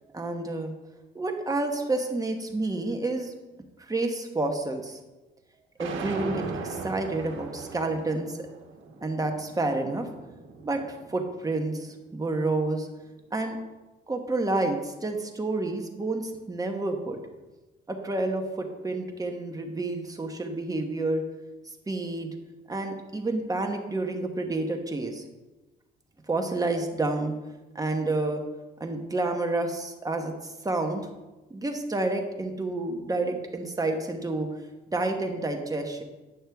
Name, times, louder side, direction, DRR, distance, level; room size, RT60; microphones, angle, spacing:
voice 1, 0.1-0.7 1.1-3.3 3.8-5.0 5.8-8.5 9.0-10.1 10.6-12.9 13.3-13.6 14.1-17.2 17.9-21.2 21.9-22.3 22.7-25.2 26.3-27.3 27.7-28.4 28.8-31.1 31.5-34.5 34.9-36.0, right 2 dB, 20° right, 3 dB, 1.2 m, -29 dB
sound 1, 5.8-11.9, right 4 dB, 75° right, 1.3 m, -39 dB
9.2 x 6.4 x 3.5 m, 1.1 s
cardioid pair, 90°, 20 cm